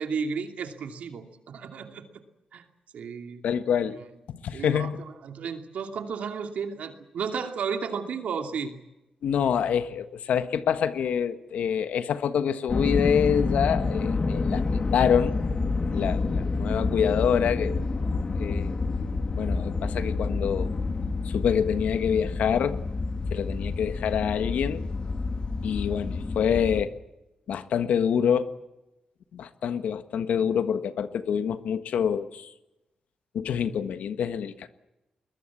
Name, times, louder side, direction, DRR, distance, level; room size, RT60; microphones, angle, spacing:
voice 1, 0.0-2.1 2.5-2.6 2.9-3.5 3.9-4.0 4.5-4.9 5.2-8.7, right 6 dB, 75° right, 6 dB, 2.7 m, -33 dB
voice 2, 3.4-4.0 4.4-5.0 9.2-14.6 14.9-15.3 15.9-17.8 18.4-18.7 19.4-20.7 21.2-22.8 23.3-24.8 25.6-26.9 27.5-28.5 29.3-32.5 33.3-34.7, left 8 dB, 85° left, 11 dB, 1.4 m, -26 dB
sound 1, 12.7-26.8, left 3 dB, 40° left, 2.1 m, -28 dB
21.5 x 21.0 x 8.4 m, 0.96 s
cardioid pair, 70°, 2 cm